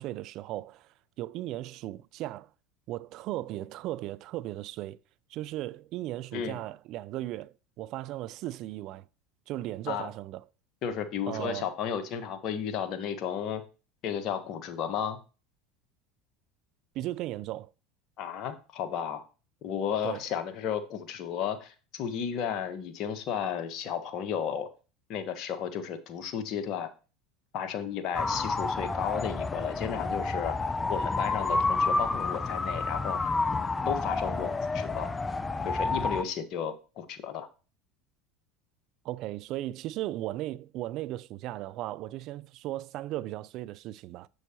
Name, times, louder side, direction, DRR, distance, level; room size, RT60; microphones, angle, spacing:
voice 1, 0.0-2.5 2.9-5.0 5.3-9.1 9.5-10.4 11.3-11.7 16.9-17.7 20.0-20.2 39.0-44.3, right 15 dB, 55° right, 0.4 m, -36 dB
voice 2, 10.8-13.6 14.0-15.2 18.2-19.2 19.6-24.7 25.1-26.9 27.5-30.6 30.9-33.2 33.8-35.1 35.6-37.5, left 8 dB, 55° left, 1.4 m, -33 dB
sound 1, 28.1-36.2, left 3 dB, 20° left, 0.6 m, -29 dB
7.8 x 6.3 x 3.0 m
hypercardioid pair, 85°, 0 cm